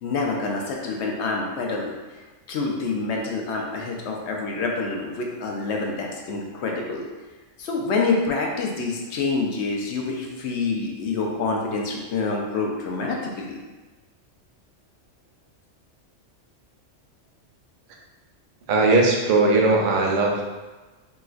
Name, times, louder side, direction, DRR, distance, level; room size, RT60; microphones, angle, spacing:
voice 1, 0.0-7.0 7.6-13.6, left 3 dB, 70° left, 0 dB, 0.8 m, -27 dB
voice 2, 18.7-20.4, right 3 dB, 60° right, -1 dB, 0.5 m, -19 dB
3.8 x 2.4 x 2.4 m, 1.2 s
omnidirectional pair, 1.3 m